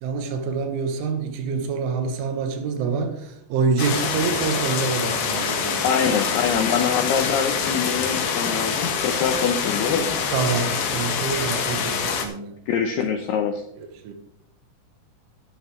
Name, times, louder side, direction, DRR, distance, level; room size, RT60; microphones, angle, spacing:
voice 1, 0.0-5.9 10.3-12.5 13.8-14.1, right 5 dB, 80° right, 3.8 m, -26 dB
sound 1, 3.8-12.3, left 6 dB, 65° left, 3.0 m, -25 dB
voice 2, 5.8-10.1 12.7-13.6, left 7 dB, 80° left, 2.4 m, -24 dB
14.0 x 10.5 x 3.2 m
omnidirectional pair, 5.6 m